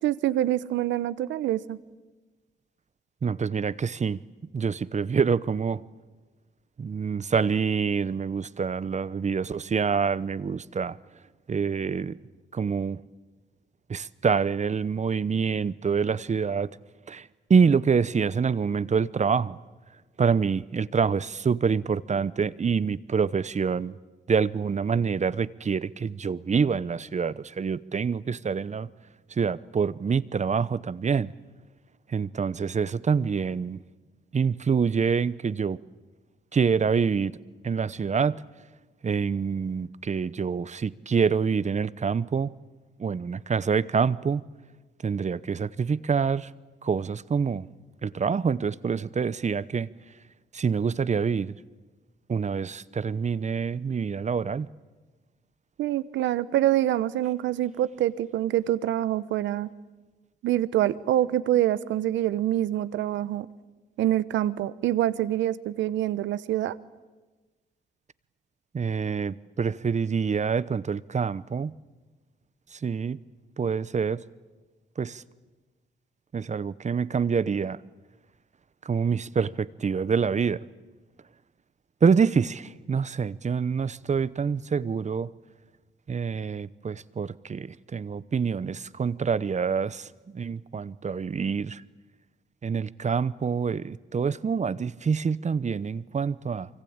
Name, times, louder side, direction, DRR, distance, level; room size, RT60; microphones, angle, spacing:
voice 1, 0.0-1.8 55.8-59.7 60.4-63.5 64.0-66.8, right 13 dB, 85° right, 0.9 m, -25 dB
voice 2, 3.2-4.2 4.5-5.8 6.8-11.0 11.5-12.2 12.5-13.0 13.9-16.7 17.1-19.6 20.2-24.0 24.3-28.9 29.3-31.3 32.1-33.8 34.3-35.8 36.5-37.4 37.6-38.4 39.0-42.5 43.0-44.4 45.0-46.5 46.8-47.7 48.0-49.9 50.5-51.5 52.3-54.7 68.7-71.7 72.7-73.2 73.6-74.2 75.0-75.2 76.3-77.8 78.8-80.6 82.0-85.3 86.1-91.8 92.6-96.7, right 6 dB, 40° right, 0.8 m, -26 dB
26.0 x 24.5 x 8.8 m
supercardioid pair, 60°, 19 cm